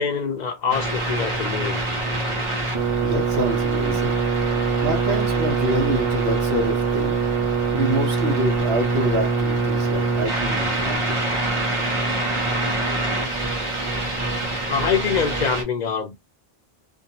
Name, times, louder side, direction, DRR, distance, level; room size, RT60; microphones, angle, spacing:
voice 1, 0.0-1.8 12.9-13.0 14.7-16.2, left 6 dB, 55° left, 0.5 m, -25 dB
sound 1, 0.7-15.6, right 3 dB, 30° right, 1.0 m, -23 dB
voice 2, 3.0-4.2 4.8-7.2 7.7-11.2, right 1 dB, 80° right, 1.1 m, -26 dB
2.5 x 2.2 x 2.7 m
omnidirectional pair, 1.0 m